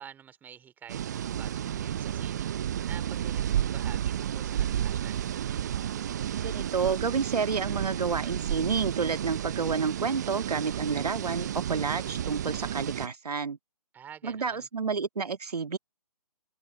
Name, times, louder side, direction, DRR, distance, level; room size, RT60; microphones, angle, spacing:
voice 1, 0.0-2.5 2.8-5.2 13.9-14.7, right 8 dB, 10° right, 2.7 m, -48 dB
sound 1, 0.9-13.1, right 10 dB, 30° right, 0.6 m, -32 dB
voice 2, 6.4-13.6 14.2-15.8, right 5 dB, 75° right, 1.7 m, -30 dB
hypercardioid pair, 155°, 20 cm